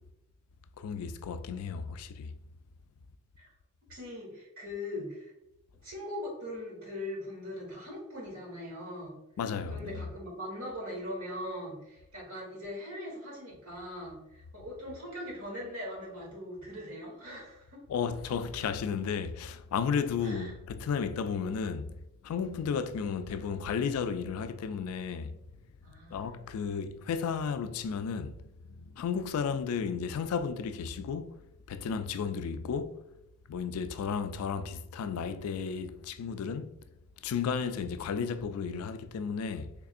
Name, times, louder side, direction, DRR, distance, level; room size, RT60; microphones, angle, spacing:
voice 1, 0.8-2.3 9.4-10.0 17.9-21.9 22.2-25.4 26.1-28.3 28.8-31.4 31.7-33.0 33.5-36.7 37.2-39.7, left 6 dB, 90° left, 0.3 m, -33 dB
voice 2, 3.9-5.3 5.8-9.1 9.7-17.8 20.2-20.5 25.8-26.4, left 1 dB, 85° right, 1.5 m, -41 dB
3.5 x 3.3 x 2.5 m
head